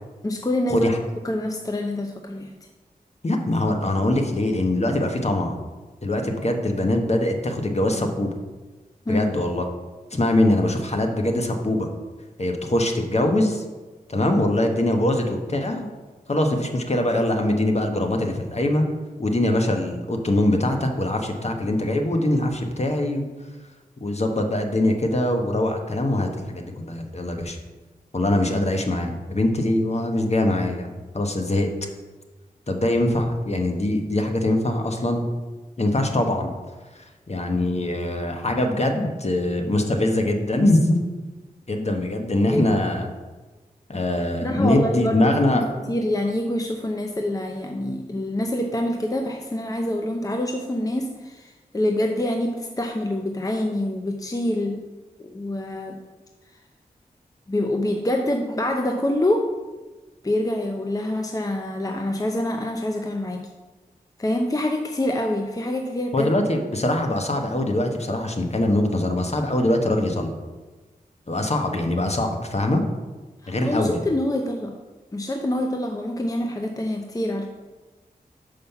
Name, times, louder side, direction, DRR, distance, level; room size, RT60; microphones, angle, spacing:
voice 1, 0.2-0.9 1.2-2.5 9.1-9.3 42.5-42.6 44.4-45.6 45.9-54.8 55.2-56.0 57.5-59.5 60.2-63.4 64.2-66.3 73.4-74.8 75.1-77.5, left 1 dB, 20° left, 3 dB, 0.6 m, -26 dB
voice 2, 3.2-5.6 6.0-8.3 9.1-9.6 10.1-11.9 12.4-13.6 14.1-15.9 16.3-18.9 19.2-23.2 24.0-27.6 28.1-31.7 32.7-35.2 35.8-36.5 36.9-41.0 41.7-43.1 43.9-45.6 66.1-70.3 71.3-72.8 73.5-74.0, left 1 dB, 45° left, 4 dB, 1.1 m, -23 dB
5.6 x 5.1 x 5.8 m, 1.2 s
cardioid pair, 40°, 16 cm